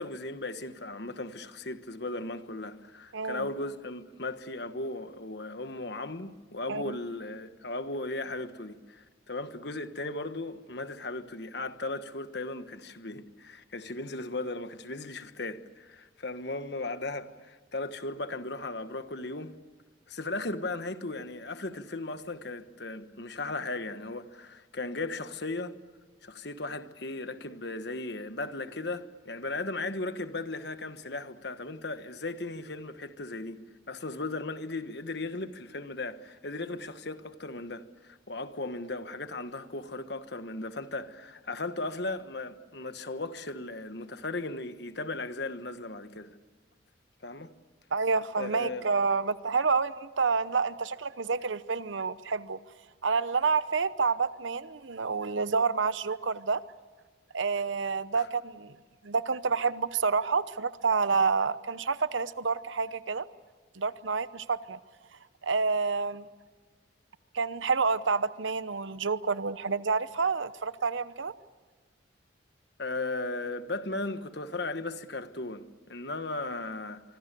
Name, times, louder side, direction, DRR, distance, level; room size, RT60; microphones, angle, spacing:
voice 1, 0.0-19.5 20.1-25.8 26.2-33.6 33.9-46.4 47.2-47.5 48.4-48.9 58.1-58.3 72.8-77.0, left 2 dB, 55° left, 1.3 m, -36 dB
voice 2, 3.1-3.5 6.7-7.0 47.9-52.6 53.0-56.6 57.3-58.8 59.0-63.3 63.7-64.8 65.4-66.3 67.3-71.3, right 4 dB, 75° right, 0.9 m, -28 dB
25.0 x 25.0 x 6.9 m
head